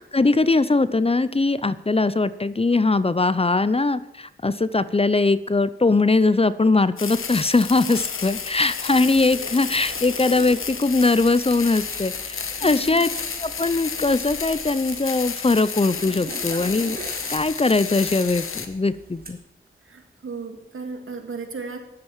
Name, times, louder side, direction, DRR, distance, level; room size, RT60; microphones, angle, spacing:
voice 1, 0.1-13.1 13.4-17.0 17.3-19.4, left 3 dB, 30° left, 16 dB, 0.7 m, -21 dB
sound 1, 7.0-18.7, left 6 dB, 90° left, 1.2 m, -32 dB
Zipper (clothing), 7.1-19.3, right 2 dB, 45° right, 3.1 m, -43 dB
voice 2, 12.6-13.1 19.8-21.8, right 4 dB, 80° right, 5 dB, 2.2 m, -35 dB
13.0 x 11.5 x 7.3 m, 0.89 s
cardioid pair, 45°, 21 cm